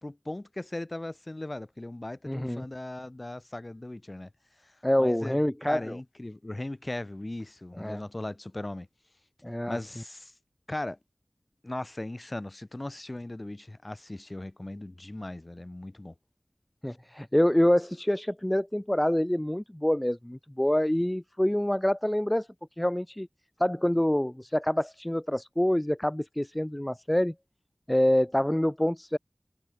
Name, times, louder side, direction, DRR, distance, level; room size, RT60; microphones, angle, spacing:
voice 1, 0.0-4.3 4.6-5.4 5.7-8.9 9.7-10.3 10.7-11.0 11.6-16.1, left 1 dB, 35° left, 5.0 m, -38 dB
voice 2, 2.3-2.6 4.8-6.0 7.8-8.0 9.4-9.8 16.8-22.5 22.8-23.3 23.6-27.3 27.9-29.2, left 1 dB, 15° left, 1.5 m, -26 dB
wide cardioid pair, 60°, 0 cm